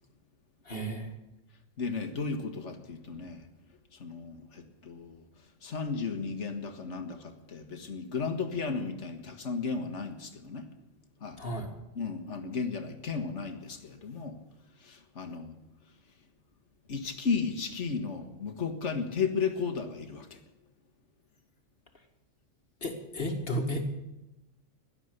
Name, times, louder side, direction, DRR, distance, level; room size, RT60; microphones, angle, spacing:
voice 1, 0.7-1.1 11.4-11.7 22.8-23.8, equal, 45° left, 3 dB, 2.3 m, -33 dB
voice 2, 1.8-3.5 3.9-5.2 5.6-10.7 11.2-11.4 11.9-14.4 14.8-15.6 16.9-20.4, left 5 dB, 60° left, 6 dB, 1.9 m, -34 dB
16.5 x 12.0 x 6.7 m, 0.99 s
omnidirectional pair, 1.3 m